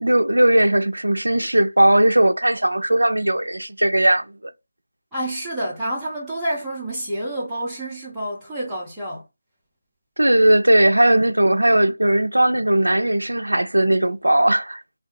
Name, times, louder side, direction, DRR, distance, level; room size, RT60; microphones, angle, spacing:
voice 1, 0.0-4.5 10.2-14.8, right 1 dB, 70° right, 0.3 m, -18 dB
voice 2, 5.1-9.2, right 1 dB, 5° right, 0.5 m, -28 dB
3.3 x 2.2 x 2.8 m
figure-of-eight pair, 160°, 0 cm